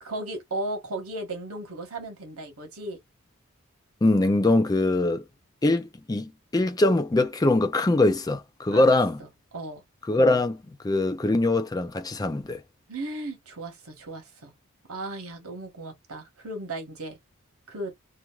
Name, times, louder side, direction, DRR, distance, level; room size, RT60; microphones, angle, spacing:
voice 1, 0.0-3.0 8.7-8.9 9.2-9.8 12.9-14.5 14.9-17.2 17.7-17.9, right 2 dB, 80° right, 1.3 m, -36 dB
voice 2, 4.0-5.2 5.6-9.2 10.1-12.6, left 2 dB, 15° left, 0.4 m, -22 dB
2.9 x 2.5 x 2.3 m
head